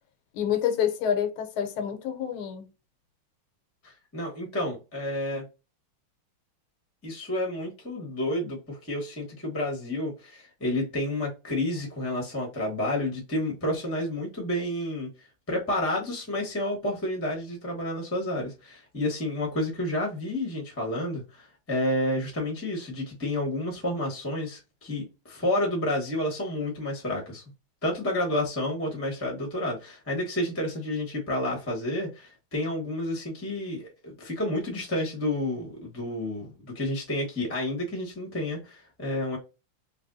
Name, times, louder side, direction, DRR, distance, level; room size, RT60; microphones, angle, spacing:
voice 1, 0.3-2.7, left 9 dB, 85° left, 1.5 m, -27 dB
voice 2, 3.8-5.5 7.0-27.4 27.8-39.4, left 1 dB, 15° left, 0.6 m, -30 dB
3.3 x 3.0 x 2.5 m
omnidirectional pair, 2.3 m